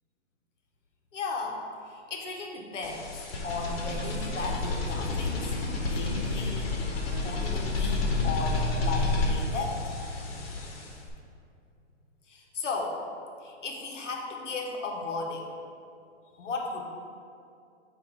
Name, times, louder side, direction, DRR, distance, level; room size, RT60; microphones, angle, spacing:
voice 1, 1.1-6.8 7.2-10.8 12.3-13.0 13.4-15.5 16.3-16.8, left 3 dB, 85° left, 1 dB, 1.1 m, -36 dB
sound 1, 2.8-11.1, left 3 dB, 55° left, 1.2 m, -30 dB
8.0 x 2.8 x 4.6 m, 2.5 s
hypercardioid pair, 165°, 36 cm